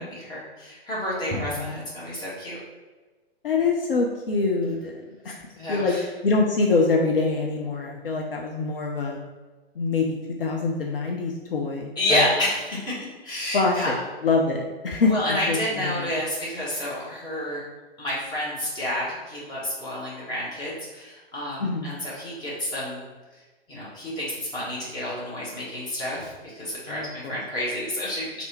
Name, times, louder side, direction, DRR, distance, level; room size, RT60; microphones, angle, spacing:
voice 1, 0.2-2.6 5.5-6.0 12.0-13.0 13.2-14.0 15.0-17.6 18.0-23.0 23.7-28.4, left 1 dB, 15° left, -7 dB, 1.2 m, -29 dB
voice 2, 1.3-1.8 3.4-5.4 5.7-5.9 6.2-9.2 9.8-12.3 13.5-13.9 14.2-16.1 21.6-21.9 26.9-27.4, left 3 dB, 60° left, 0 dB, 0.6 m, -25 dB
3.3 x 2.8 x 4.2 m, 1.3 s
figure-of-eight pair, 115°, 31 cm